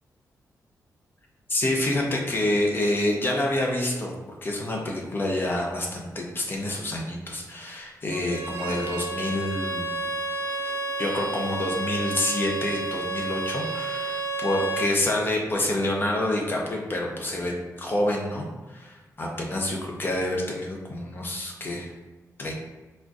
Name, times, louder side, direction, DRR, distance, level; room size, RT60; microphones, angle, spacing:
voice 1, 1.5-4.1 4.4-10.0 11.0-21.9 22.4-22.5, left 1 dB, 35° left, 0 dB, 0.7 m, -27 dB
Bowed string instrument, 8.1-15.0, right 3 dB, 65° right, 0.8 m, -31 dB
4.3 x 2.5 x 2.4 m, 1.2 s
wide cardioid pair, 120°, 6 cm